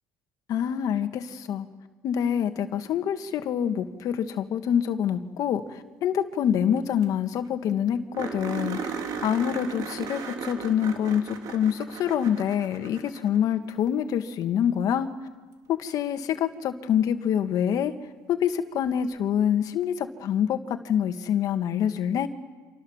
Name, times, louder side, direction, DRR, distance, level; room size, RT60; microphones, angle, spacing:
voice 1, 0.5-1.7 2.0-15.1 15.7-17.9 18.3-20.6 20.8-22.3, left 9 dB, 60° left, 8 dB, 1.9 m, -26 dB
sound 1, 6.8-6.9 7.0-7.1 7.4-7.5 8.1-13.6 15.9-16.0 18.8-18.9, right 6 dB, 65° right, 3.4 m, -36 dB
29.0 x 27.0 x 7.3 m, 1.3 s
cardioid pair, 115°, 7 cm